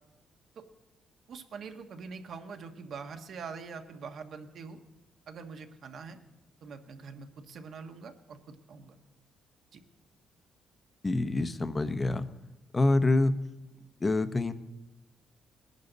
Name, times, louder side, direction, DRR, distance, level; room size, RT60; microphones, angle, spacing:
voice 1, 1.3-4.8 5.3-6.2 6.6-9.0 9.7-9.8, right 5 dB, 65° right, 6 dB, 1.3 m, -44 dB
voice 2, 11.0-12.3 12.7-13.3 14.0-14.5, left 2 dB, 25° left, 11 dB, 0.8 m, -26 dB
19.5 x 10.5 x 4.0 m, 1.0 s
cardioid pair, 90°, 0 cm